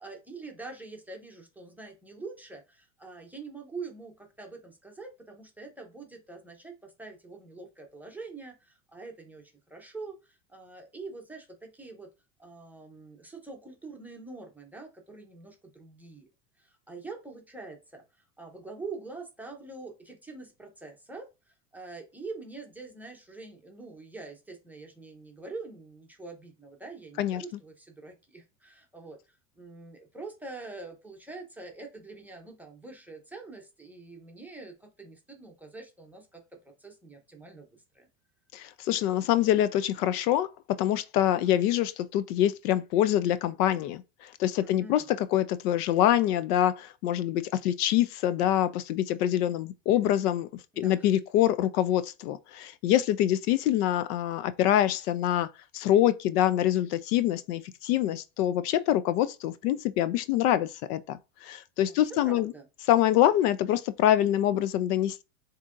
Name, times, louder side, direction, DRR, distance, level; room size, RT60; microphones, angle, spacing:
voice 1, 0.0-12.1 12.4-16.3 16.6-36.4 36.8-37.7 37.9-38.1 44.6-45.1 50.7-51.1 61.9-62.7, right 3 dB, 5° right, 0.7 m, -44 dB
voice 2, 38.5-40.5 40.8-50.5 50.8-55.5 55.7-62.5 62.9-65.2, left 12 dB, 75° left, 0.6 m, -25 dB
7.2 x 2.8 x 2.5 m
supercardioid pair, 135°, 46 cm